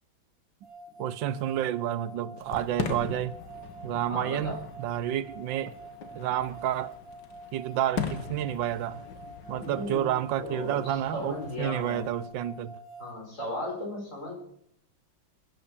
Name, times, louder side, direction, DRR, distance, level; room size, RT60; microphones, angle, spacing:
sound 1, 0.6-13.1, right 2 dB, 40° right, 4.0 m, -47 dB
voice 1, 1.0-3.4 3.8-4.5 4.8-5.7 6.1-6.9 7.5-9.0 9.5-12.7, right 11 dB, 75° right, 1.5 m, -30 dB
Fireworks, 2.4-12.3, left 6 dB, 65° left, 2.1 m, -40 dB
voice 2, 4.1-4.6 9.5-10.1 10.4-12.0 13.0-14.3, left 1 dB, 40° left, 5.5 m, -36 dB
15.5 x 11.0 x 7.2 m
omnidirectional pair, 2.1 m